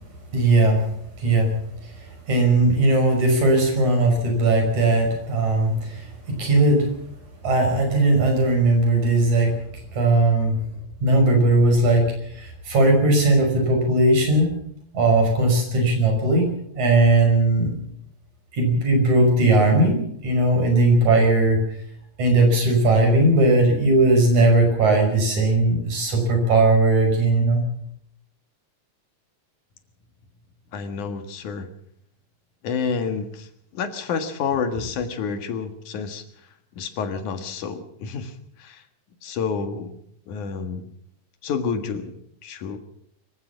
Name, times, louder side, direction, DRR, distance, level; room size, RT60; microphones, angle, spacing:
voice 1, 0.3-0.8 1.2-1.5 2.3-6.9 7.4-9.5 9.9-10.6 11.0-12.1 12.4-14.5 14.9-16.5 16.8-17.7 18.5-21.6 22.2-27.7, right 2 dB, 75° right, 3 dB, 7.1 m, -18 dB
voice 2, 30.7-31.7 32.6-33.5 33.7-36.2 36.8-38.3 38.6-38.8 39.2-40.0 40.3-40.9 41.4-42.8, left 5 dB, 85° left, 8 dB, 3.2 m, -29 dB
24.5 x 14.5 x 7.2 m, 0.71 s
omnidirectional pair, 3.4 m